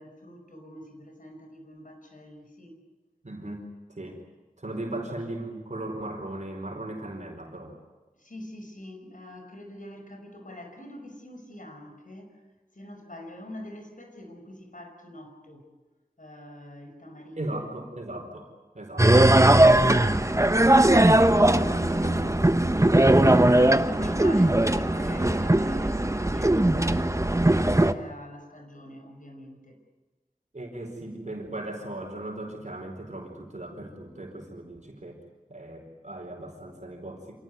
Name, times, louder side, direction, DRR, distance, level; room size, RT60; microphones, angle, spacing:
voice 1, 0.0-2.8 8.2-12.4 12.7-15.7 16.2-17.6 21.5-22.4 23.1-29.8, left 1 dB, 65° left, 4 dB, 5.4 m, -44 dB
voice 2, 3.2-4.2 4.6-7.7 17.4-18.5 18.7-19.3 21.6-22.6 30.5-35.2 35.5-37.4, right 1 dB, 55° right, 2 dB, 4.7 m, -37 dB
sound 1, 19.0-27.9, right 1 dB, 20° right, 1.1 m, -19 dB
27.0 x 18.5 x 9.6 m, 1.2 s
wide cardioid pair, 55°, 15 cm